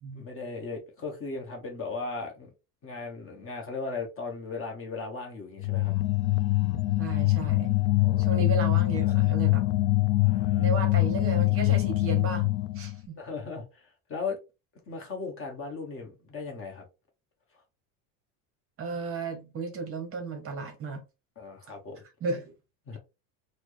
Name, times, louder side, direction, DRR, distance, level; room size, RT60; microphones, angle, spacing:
voice 1, 0.1-2.5 2.8-5.9 8.0-8.4 9.0-9.1 10.2-11.0 13.2-14.4 14.9-16.8 21.4-22.0 22.9-23.0, left 4 dB, 30° left, 0.9 m, -37 dB
sound 1, 5.6-13.0, left 19 dB, 70° left, 0.5 m, -24 dB
voice 2, 7.0-7.7 8.2-9.6 10.6-13.2 18.8-21.0 22.2-22.5, right 4 dB, 30° right, 0.8 m, -34 dB
4.1 x 2.1 x 3.1 m
supercardioid pair, 135°, 44 cm